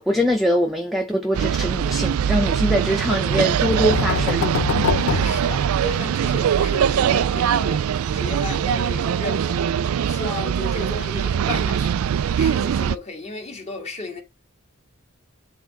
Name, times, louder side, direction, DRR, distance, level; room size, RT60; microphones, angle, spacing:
voice 1, 0.0-4.5, equal, ahead, 0.7 m, -23 dB
sound 1, 1.3-13.0, right 8 dB, 90° right, 0.3 m, -22 dB
sound 2, 3.3-6.2, left 7 dB, 70° left, 0.4 m, -25 dB
voice 2, 5.0-7.9 8.1-12.0 12.3-14.2, left 3 dB, 30° left, 1.6 m, -34 dB
8.4 x 3.7 x 3.9 m
head